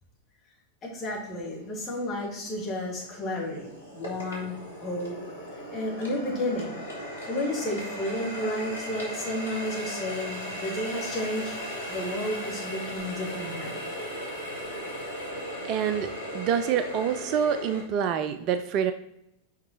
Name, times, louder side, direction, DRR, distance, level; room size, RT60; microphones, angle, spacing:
voice 1, 0.8-5.2 5.7-6.7 7.2-13.9, left 1 dB, 25° left, -4 dB, 2.7 m, -32 dB
Water tap faucet, 1.3-1.4 2.0-17.8, equal, 80° left, 2.0 m, -37 dB
voice 2, 15.7-16.1 16.3-18.9, right 8 dB, 40° right, 10 dB, 0.4 m, -26 dB
5.9 x 5.3 x 4.2 m, 0.83 s
figure-of-eight pair, 90°, 0 cm